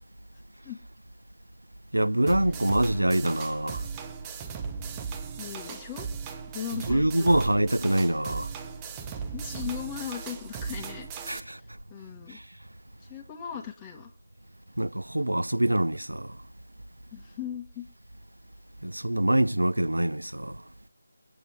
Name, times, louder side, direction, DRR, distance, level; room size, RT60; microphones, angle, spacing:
voice 1, 1.9-3.8 6.7-8.5 11.3-11.6 12.3-12.4 14.8-16.4 18.8-20.6, right 1 dB, 85° right, 0.5 m, -25 dB
sound 1, 2.3-11.4, right 6 dB, 15° right, 0.9 m, -37 dB
voice 2, 5.4-6.1 6.5-7.4 9.3-11.5 11.9-12.4 13.0-14.1 17.1-17.9, left 9 dB, 15° left, 2.0 m, -38 dB
23.5 x 9.1 x 3.6 m
figure-of-eight pair, 160°, 0 cm